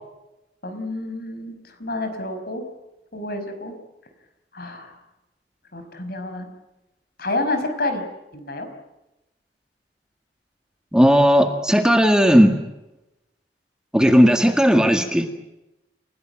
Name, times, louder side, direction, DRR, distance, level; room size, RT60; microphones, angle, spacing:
voice 1, 0.6-2.6 3.1-3.7 4.5-4.9 5.7-6.5 7.2-8.0 8.3-8.7, left 2 dB, 60° left, 7 dB, 5.4 m, -29 dB
voice 2, 10.9-12.6 13.9-15.3, equal, 5° right, 5 dB, 1.8 m, -15 dB
29.5 x 16.5 x 9.1 m, 0.95 s
head